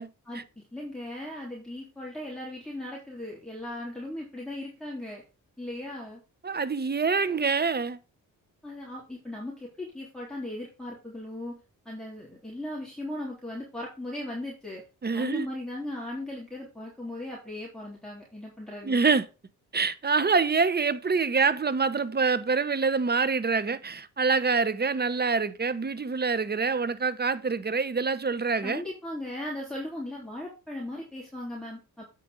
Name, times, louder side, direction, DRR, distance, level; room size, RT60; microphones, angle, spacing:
voice 1, 0.3-5.2 5.6-6.2 8.6-11.6 11.9-14.8 15.1-19.0 28.6-32.0, left 1 dB, ahead, 3.6 m, -37 dB
voice 2, 6.4-8.0 15.0-15.5 18.8-19.3 19.7-28.8, right 4 dB, 30° right, 0.9 m, -26 dB
8.4 x 5.3 x 5.1 m
cardioid pair, 60°, 35 cm